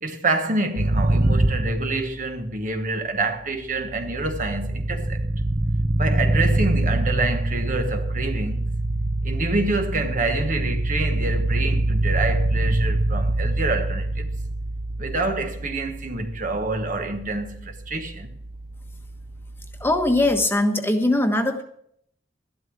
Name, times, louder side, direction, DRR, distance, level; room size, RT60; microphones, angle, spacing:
voice 1, 0.0-5.2 6.0-8.6 9.2-14.3 15.0-18.3, right 2 dB, 45° right, 1.3 m, -27 dB
sound 1, 0.8-2.5 3.5-20.4, right 1 dB, 25° right, 0.8 m, -25 dB
voice 2, 19.8-21.6, left 1 dB, 15° left, 1.2 m, -21 dB
13.0 x 12.0 x 4.7 m
head